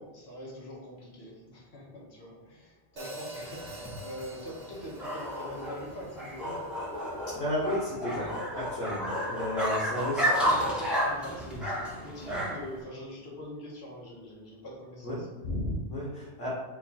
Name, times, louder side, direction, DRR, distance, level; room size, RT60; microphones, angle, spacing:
voice 1, 0.0-6.7 10.0-15.3, equal, 65° left, -4 dB, 1.5 m, -43 dB
Hi-hat, 3.0-7.1, right 1 dB, 45° right, 0.9 m, -45 dB
sound 1, 3.4-12.8, equal, ahead, 0.8 m, -32 dB
voice 2, 7.3-10.2 15.0-15.2 15.4-16.5, left 1 dB, 90° left, -7 dB, 1.4 m, -33 dB
4.9 x 2.4 x 4.1 m, 1.1 s
omnidirectional pair, 1.2 m